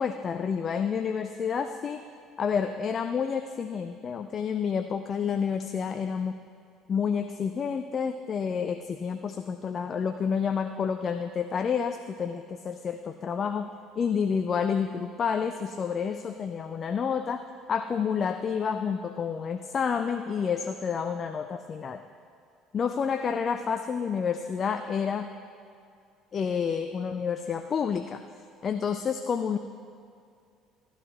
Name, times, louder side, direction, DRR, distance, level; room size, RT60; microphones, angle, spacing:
voice 1, 0.0-2.0 2.4-6.4 6.9-22.0 22.7-25.3 26.3-28.2 28.6-29.6, left 6 dB, 40° left, 9 dB, 0.4 m, -29 dB
14.5 x 11.0 x 3.1 m, 2.4 s
figure-of-eight pair, 55°, 0 cm